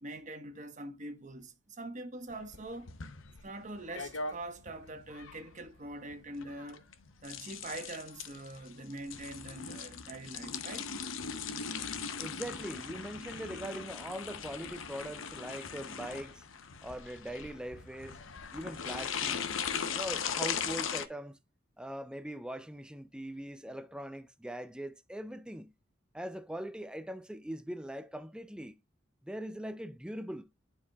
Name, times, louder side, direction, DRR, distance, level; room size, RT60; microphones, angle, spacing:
voice 1, 0.0-2.9 3.4-6.9 7.2-10.9, right 2 dB, 40° right, 1.1 m, -43 dB
sound 1, 2.3-21.1, left 6 dB, 90° left, 0.8 m, -39 dB
voice 2, 12.2-16.4 16.8-18.2 18.5-19.5 19.9-21.4 21.8-25.7 26.1-28.8 29.2-30.5, right 1 dB, 5° right, 0.4 m, -41 dB
11.0 x 4.7 x 2.3 m
head